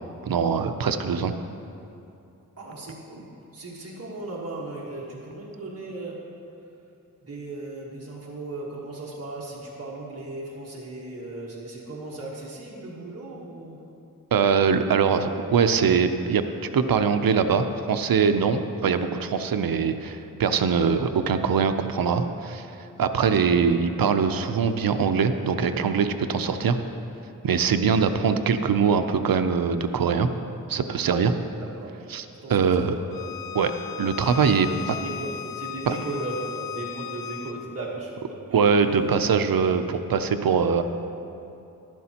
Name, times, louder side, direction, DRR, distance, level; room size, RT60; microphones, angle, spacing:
voice 1, 0.2-1.3 14.3-16.4 16.7-22.7 23.0-26.8 27.4-30.3 30.7-31.3 32.1-32.2 32.5-33.0 33.5-33.7 34.0-34.7 35.9-36.0 38.5-40.8, right 6 dB, 85° right, 9 dB, 0.6 m, -22 dB
voice 2, 2.6-6.3 7.2-13.8 21.0-21.1 23.6-24.0 27.8-28.1 31.6-32.0 32.3-33.3 34.6-38.7, right 2 dB, 45° right, -4 dB, 1.4 m, -37 dB
Bowed string instrument, 33.1-37.6, left 11 dB, 90° left, 0.5 m, -36 dB
13.5 x 12.0 x 2.9 m, 2.7 s
wide cardioid pair, 100°, 34 cm